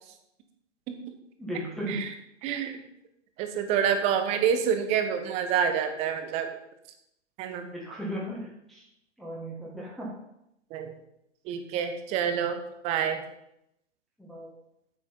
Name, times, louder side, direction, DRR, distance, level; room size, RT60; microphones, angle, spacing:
voice 1, 1.4-2.0 7.7-8.9 9.2-10.1 14.2-14.5, right 1 dB, ahead, -6 dB, 1.6 m, -36 dB
voice 2, 2.4-2.8 3.4-6.5 7.4-7.7 10.7-10.9 11.4-13.2, right 8 dB, 15° right, 7 dB, 0.9 m, -27 dB
8.6 x 8.4 x 5.3 m, 0.81 s
figure-of-eight pair, 120°, 37 cm